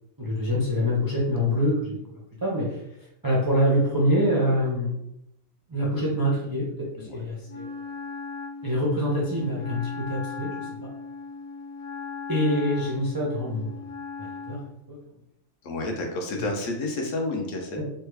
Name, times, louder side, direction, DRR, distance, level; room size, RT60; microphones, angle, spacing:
voice 1, 0.2-2.8 3.2-4.9 5.7-6.7 7.0-7.7 8.6-10.7 12.3-13.8 14.2-15.0 17.8-17.9, equal, 30° right, -5 dB, 0.4 m, -25 dB
Wind instrument woodwind instrument, 7.5-14.7, left 5 dB, 90° left, 1.3 m, -38 dB
voice 2, 15.6-17.8, left 2 dB, 70° left, 2 dB, 1.0 m, -30 dB
3.2 x 2.2 x 3.2 m, 0.81 s
omnidirectional pair, 1.4 m